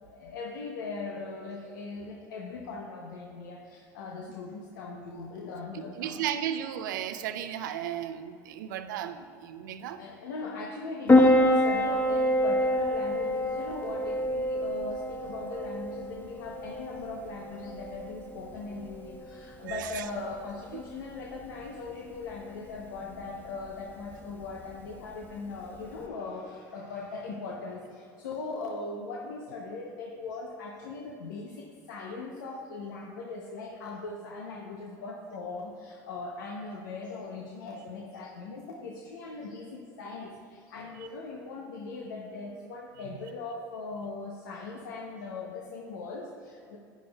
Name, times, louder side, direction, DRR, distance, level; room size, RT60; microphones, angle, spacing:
voice 1, 0.0-6.2 10.0-46.8, left 3 dB, 85° left, -1 dB, 0.8 m, -39 dB
voice 2, 5.7-10.0 19.6-20.0 20.7-20.8 43.0-43.2, right 10 dB, 85° right, 9 dB, 0.5 m, -35 dB
Piano, 11.1-26.1, left 1 dB, 20° left, 1.2 m, -28 dB
10.0 x 10.0 x 2.3 m, 2.3 s
hypercardioid pair, 80°, 10 cm